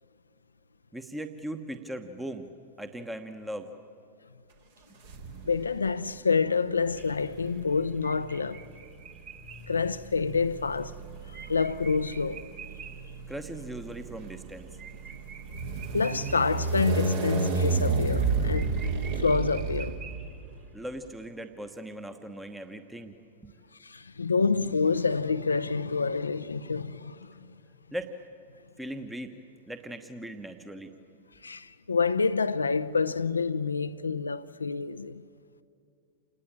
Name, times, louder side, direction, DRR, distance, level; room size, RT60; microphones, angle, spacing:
voice 1, 0.9-2.5 2.8-3.7 13.3-14.7 14.9-15.0 20.7-23.2 23.4-23.5 27.9-28.1 28.8-29.3 29.7-30.9, right 1 dB, 5° right, 1.2 m, -39 dB
sound 1, 5.1-5.8 6.8-20.5, right 3 dB, 60° right, 2.8 m, -32 dB
voice 2, 5.4-8.6 9.7-11.0 11.3-12.4 15.9-18.9 19.2-20.0 23.8-27.5 31.4-35.2, left 4 dB, 75° left, 0.6 m, -28 dB
sound 2, 7.0-13.1 13.5-13.6 13.9-14.0 14.3-16.9 17.2-17.6 17.8-17.9 18.2-18.3 18.5-20.6, right 7 dB, 35° right, 2.6 m, -48 dB
28.0 x 20.0 x 8.8 m
figure-of-eight pair, 90°, 0 cm